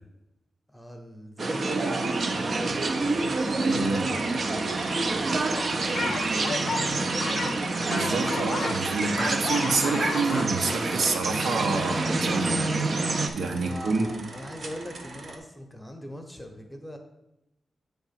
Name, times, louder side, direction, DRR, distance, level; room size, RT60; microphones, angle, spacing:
voice 1, 0.7-3.1 3.4-5.0 5.7-7.5 13.5-17.0, equal, 5° left, 3 dB, 0.9 m, -42 dB
sound 1, 1.4-13.3, right 3 dB, 40° right, 0.6 m, -27 dB
sound 2, 1.7-15.4, right 2 dB, 60° right, 1.0 m, -44 dB
voice 2, 3.6-4.1 7.8-12.6 13.3-14.1, right 4 dB, 85° right, 3 dB, 1.0 m, -28 dB
sound 3, 5.5-8.8 9.1-10.6, left 5 dB, 60° left, 0.5 m, -33 dB
7.9 x 3.5 x 5.8 m, 0.88 s
wide cardioid pair, 155°, 0 cm